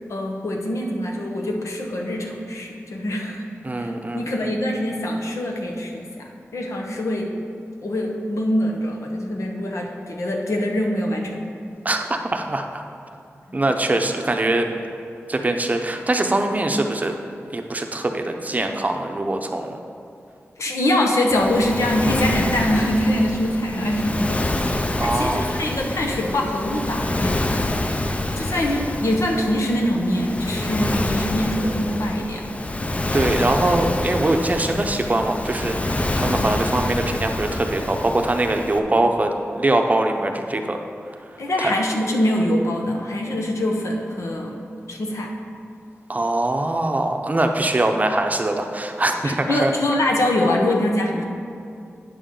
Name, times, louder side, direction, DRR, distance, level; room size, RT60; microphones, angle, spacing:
voice 1, 0.1-3.5 3.8-7.3 7.8-11.4 20.6-24.4 25.0-27.7 28.4-32.4 36.2-36.5 41.4-44.6 44.9-45.3 49.2-51.2, left 1 dB, 85° left, 1 dB, 1.0 m, -24 dB
voice 2, 3.6-4.5 11.8-12.8 13.5-14.7 15.3-17.2 17.5-19.8 24.9-25.5 33.1-40.8 41.6-41.7 46.1-49.7, right 2 dB, 30° right, 4 dB, 0.6 m, -22 dB
Waves surf, 21.3-38.8, left 1 dB, 25° left, 0.5 m, -26 dB
9.2 x 7.0 x 3.8 m, 2.5 s
wide cardioid pair, 90°, 5 cm